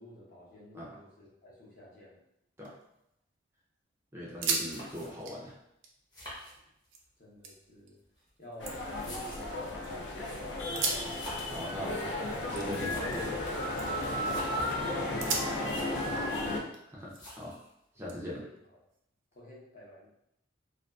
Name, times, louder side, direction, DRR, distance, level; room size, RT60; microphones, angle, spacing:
voice 1, 0.0-2.2 4.2-4.3 7.2-8.0 8.4-9.6 10.2-10.5 14.1-16.8 18.2-18.5 19.3-20.1, left 1 dB, 50° left, -6 dB, 0.8 m, -51 dB
sound 1, 2.4-3.4 3.8-3.9 4.2-4.7 5.0-7.0 7.4-8.0 8.4-9.9 10.6-13.5 13.8-14.2 14.6-14.7 15.2-17.5 18.1-19.3, right 4 dB, 80° right, 0.4 m, -39 dB
voice 2, 4.1-5.5 11.0-11.2 11.5-12.0 12.5-13.4 16.9-17.5 18.0-18.4, equal, 15° right, -6 dB, 0.4 m, -40 dB
sound 2, 4.7-5.4 6.1-7.1 8.0-9.7 10.9-11.7 12.6-13.4 14.1-14.7 15.3-15.4 15.5-16.2 17.1-17.7, left 1 dB, 20° left, 0.8 m, -47 dB
sound 3, 8.6-16.6, left 1 dB, 70° left, 0.5 m, -34 dB
2.4 x 2.3 x 2.3 m, 0.80 s
head